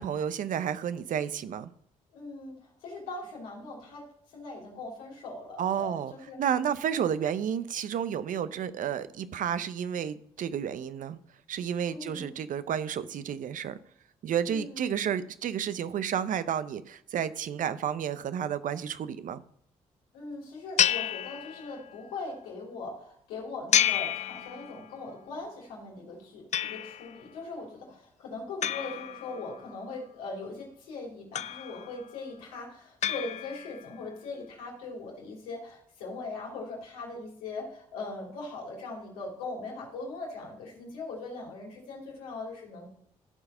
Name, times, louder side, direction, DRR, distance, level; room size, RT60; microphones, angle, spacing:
voice 1, 0.0-1.7 5.6-6.1 6.4-11.2 11.5-13.8 14.2-19.4, right 8 dB, 65° right, 0.7 m, -31 dB
voice 2, 2.1-4.1 4.3-6.4 11.9-12.4 14.5-15.0 20.1-42.9, left 3 dB, 90° left, 2.9 m, -40 dB
sound 1, 20.8-22.0 23.7-25.0 26.5-27.2 28.6-29.8 31.4-32.1 33.0-33.9, left 10 dB, 50° left, 0.4 m, -30 dB
13.5 x 4.8 x 5.5 m
supercardioid pair, 50°, 15 cm